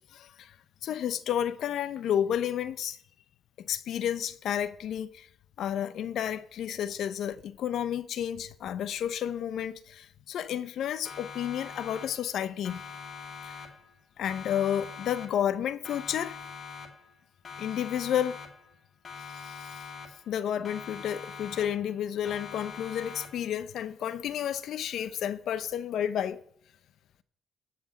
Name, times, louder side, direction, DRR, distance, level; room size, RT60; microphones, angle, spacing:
voice 1, 0.1-0.6 0.8-3.0 3.6-5.3 5.6-12.8 13.4-13.6 14.2-16.4 17.6-18.4 19.3-19.8 20.3-26.4, left 10 dB, 75° left, 0.9 m, -31 dB
Siren, 11.0-12.4 12.6-14.0 14.2-15.6 15.8-17.2 17.4-18.8 19.0-20.4 20.6-22.0 22.2-23.6, left 5 dB, 45° left, 2.4 m, -44 dB
16.5 x 6.2 x 8.8 m
cardioid pair, 90°, 0 cm